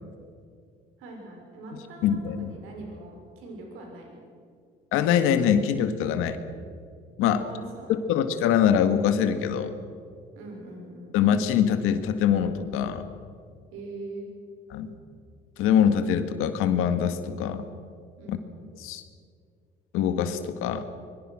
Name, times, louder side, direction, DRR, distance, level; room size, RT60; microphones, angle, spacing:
voice 1, 1.0-4.2 7.4-8.2 10.3-11.2 13.7-14.3 18.2-18.5, right 2 dB, 90° right, 0 dB, 6.0 m, -42 dB
voice 2, 2.0-2.5 4.9-6.4 7.2-7.4 7.9-9.7 11.1-13.0 14.7-14.9 15.6-17.7 18.3-18.4 18.8-19.0 19.9-20.8, left 8 dB, 90° left, 9 dB, 2.0 m, -23 dB
25.0 x 23.0 x 6.4 m, 2.2 s
cardioid pair, 110°, 21 cm